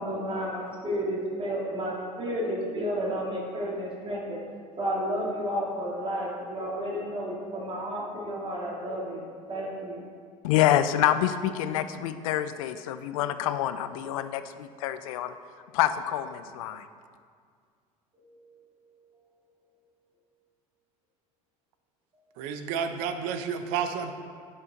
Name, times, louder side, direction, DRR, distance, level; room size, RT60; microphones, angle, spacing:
voice 1, 0.0-4.4 4.8-10.0 18.1-18.5, equal, 30° right, -3 dB, 2.1 m, -32 dB
voice 2, 10.4-15.3 15.7-16.8, left 11 dB, 80° left, 11 dB, 0.5 m, -27 dB
voice 3, 22.4-24.1, right 7 dB, 70° right, 8 dB, 0.7 m, -30 dB
9.8 x 5.5 x 4.0 m, 2.1 s
hypercardioid pair, 75°, 17 cm